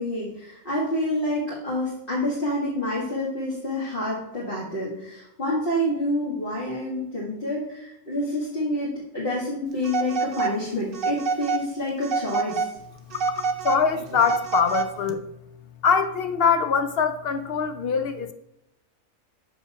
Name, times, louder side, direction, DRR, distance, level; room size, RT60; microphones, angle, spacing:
voice 1, 0.0-12.7, left 1 dB, 40° left, -6 dB, 1.8 m, -28 dB
Telephone, 9.8-10.6 10.9-11.7 12.0-12.7 13.1-15.1, right 5 dB, 50° right, 0.8 m, -27 dB
voice 2, 13.1-15.2 15.8-18.3, left 6 dB, 60° left, 10 dB, 0.6 m, -23 dB
6.8 x 5.4 x 5.7 m, 0.83 s
omnidirectional pair, 1.4 m